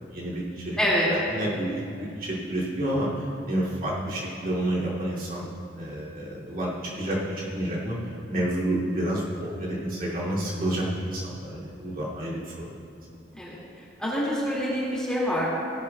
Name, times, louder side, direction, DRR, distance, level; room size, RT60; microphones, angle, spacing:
voice 1, 0.1-0.8 1.3-5.5 5.8-7.9 8.3-12.7, right 1 dB, 50° right, -7 dB, 2.6 m, -29 dB
voice 2, 0.8-1.1 13.3-13.6 14.0-15.5, equal, 5° left, -7 dB, 2.2 m, -26 dB
17.0 x 11.5 x 2.3 m, 2.6 s
head